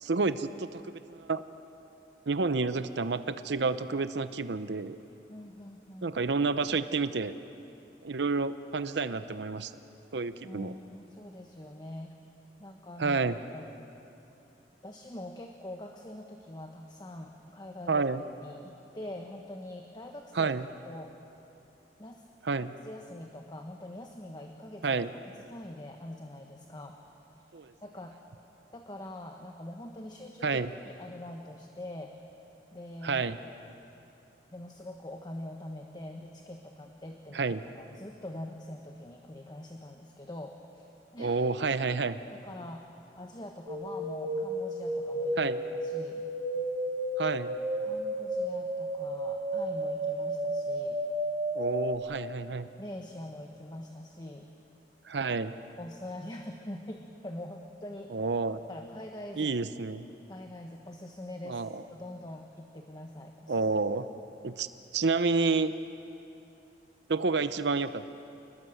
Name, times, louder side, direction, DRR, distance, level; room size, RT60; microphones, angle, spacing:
voice 1, 0.0-1.4 2.3-5.0 6.0-7.4 8.0-9.7 10.1-10.7 13.0-13.4 17.9-18.2 20.3-20.6 22.4-22.7 24.8-25.1 27.5-27.7 30.4-30.7 33.0-33.4 37.3-37.6 41.2-42.2 45.4-45.6 47.2-47.6 51.6-52.7 55.1-55.5 58.1-58.6 59.4-60.0 61.5-61.8 63.5-64.1 64.4-64.7 64.9-65.7 67.1-68.1, right 4 dB, 80° right, 12 dB, 0.7 m, -29 dB
voice 2, 5.3-6.1 10.4-12.1 12.6-13.2 13.5-13.7 14.8-18.0 18.4-20.5 20.8-21.1 22.0-22.2 22.8-25.0 25.5-27.0 27.8-28.2 28.7-30.6 30.8-32.1 32.7-33.3 34.5-41.4 42.4-42.8 43.2-46.2 47.8-51.0 52.8-54.5 55.8-58.1 58.7-59.5 60.3-61.6 61.9-63.7, left 1 dB, 25° left, 3 dB, 1.2 m, -44 dB
sound 1, 43.7-52.0, right 1 dB, 30° right, 2.1 m, -32 dB
27.5 x 20.5 x 7.9 m, 2.8 s
head